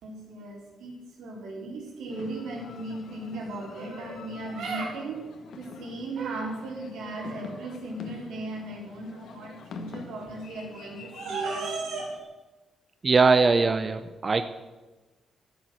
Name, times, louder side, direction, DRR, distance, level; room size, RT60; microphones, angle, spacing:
voice 1, 0.0-5.2 5.5-12.2, right 2 dB, 90° right, -1 dB, 4.5 m, -36 dB
sound 1, 2.1-12.2, left 4 dB, 65° left, 1.5 m, -46 dB
voice 2, 13.0-14.5, right 4 dB, 25° right, 9 dB, 0.6 m, -21 dB
13.5 x 9.0 x 7.9 m, 1.2 s
cardioid pair, 150°, 0 cm